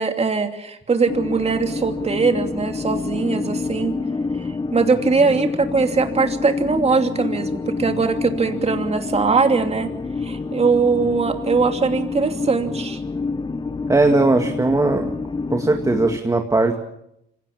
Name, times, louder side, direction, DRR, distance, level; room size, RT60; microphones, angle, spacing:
voice 1, 0.0-4.0 4.4-9.9 10.2-13.0, right 4 dB, 30° right, 5 dB, 2.9 m, -21 dB
sound 1, 1.1-16.2, left 4 dB, 25° left, 0.7 m, -28 dB
voice 2, 13.9-15.1 15.5-16.7, right 2 dB, 15° right, 4 dB, 2.1 m, -18 dB
25.5 x 17.5 x 7.2 m, 0.79 s
cardioid pair, 90°, 20 cm